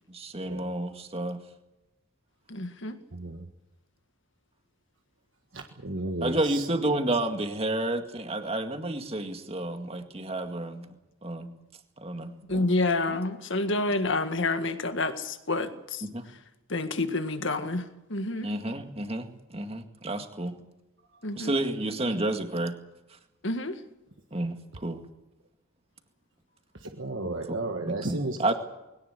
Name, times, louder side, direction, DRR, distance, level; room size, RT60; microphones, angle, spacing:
voice 1, 0.1-1.4 6.2-10.9 11.2-11.5 12.0-12.4 13.1-13.2 16.0-16.2 18.4-20.6 21.4-22.8 24.3-25.0 27.2-27.3 27.9-28.5, right 1 dB, 25° right, 2.0 m, -30 dB
voice 2, 2.5-3.0 12.5-16.4 16.7-18.5 21.2-21.5 23.4-23.8, left 2 dB, 55° left, 1.9 m, -29 dB
voice 3, 3.1-3.4 5.5-6.7 12.5-12.7 26.8-28.5, right 2 dB, 60° right, 1.6 m, -34 dB
22.0 x 18.5 x 8.2 m
head